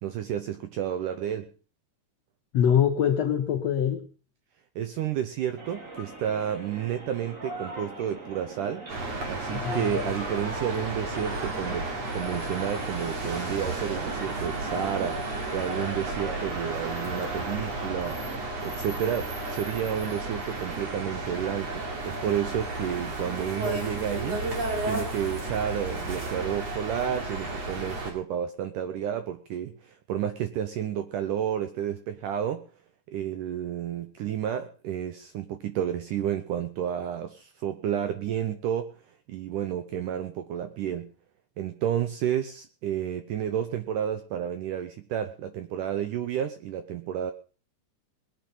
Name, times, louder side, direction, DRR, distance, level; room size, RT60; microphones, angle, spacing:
voice 1, 0.0-1.5 4.8-8.9 9.3-18.2 18.6-24.5 24.8-32.7 33.1-38.9 39.3-41.1 41.6-47.3, right 9 dB, 80° right, 9 dB, 1.9 m, -31 dB
voice 2, 2.5-4.1 9.5-10.2, left 8 dB, 85° left, 5 dB, 1.5 m, -24 dB
sound 1, 5.6-18.4, right 2 dB, 25° right, 2.0 m, -40 dB
sound 2, 8.9-28.1, right 2 dB, 45° right, 3.6 m, -33 dB
21.0 x 8.7 x 5.5 m, 0.38 s
omnidirectional pair, 4.6 m